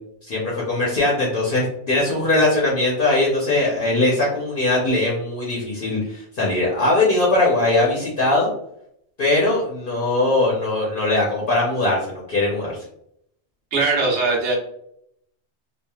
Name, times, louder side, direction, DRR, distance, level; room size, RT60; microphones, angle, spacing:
voice 1, 0.2-8.5 9.2-12.8, left 2 dB, 55° left, -4 dB, 0.9 m, -20 dB
voice 2, 13.7-14.6, right 3 dB, 80° right, -2 dB, 1.1 m, -20 dB
3.1 x 2.4 x 2.3 m, 0.73 s
omnidirectional pair, 1.2 m